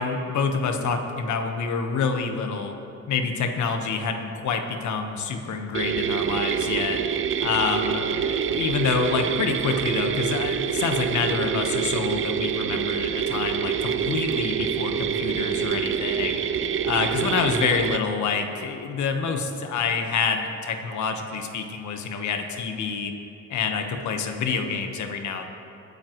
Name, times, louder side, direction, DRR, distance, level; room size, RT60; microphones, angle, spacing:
voice 1, 0.0-2.7 3.1-7.0 7.4-16.4 16.8-23.1 23.5-25.5, left 5 dB, 70° left, 5 dB, 1.4 m, -27 dB
sound 1, 5.7-18.0, right 8 dB, 45° right, 0.6 m, -26 dB
23.0 x 9.5 x 3.2 m, 2.8 s
cardioid pair, 90°, 30 cm